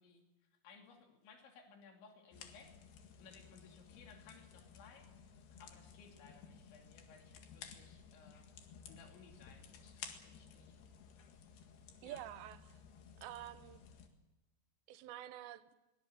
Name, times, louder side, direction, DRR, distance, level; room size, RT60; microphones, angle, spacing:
voice 1, 0.0-2.7 3.2-5.1 5.6-8.5 8.9-10.8 12.0-12.2, left 5 dB, 90° left, 3 dB, 5.1 m, -61 dB
sound 1, 2.3-14.1, left 7 dB, 65° left, 3.8 m, -56 dB
voice 2, 12.0-12.8 13.2-13.8 14.9-15.8, right 13 dB, 80° right, 13 dB, 3.1 m, -48 dB
23.0 x 20.0 x 7.7 m, 1.0 s
omnidirectional pair, 5.1 m